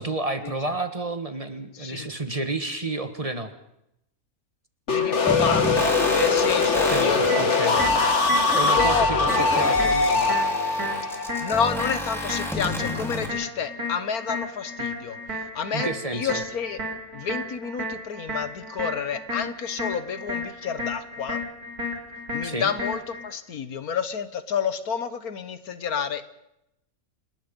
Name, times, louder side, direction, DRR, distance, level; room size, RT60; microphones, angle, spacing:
voice 1, 0.0-3.5 6.9-7.8 8.5-10.3 15.7-16.4 22.4-22.7, right 2 dB, 25° right, 8 dB, 1.5 m, -30 dB
voice 2, 1.7-2.1 4.9-7.9 8.3-9.3 9.5-9.8 11.4-16.8 17.1-21.4 22.3-26.3, left 7 dB, 80° left, 12 dB, 1.7 m, -30 dB
sound 1, 4.9-12.6, left 4 dB, 50° left, 2.0 m, -22 dB
sound 2, 5.3-13.3, left 1 dB, ahead, 3.4 m, -32 dB
sound 3, 7.3-23.3, left 1 dB, 90° right, 4.4 m, -34 dB
29.0 x 19.5 x 5.4 m, 0.82 s
omnidirectional pair, 1.5 m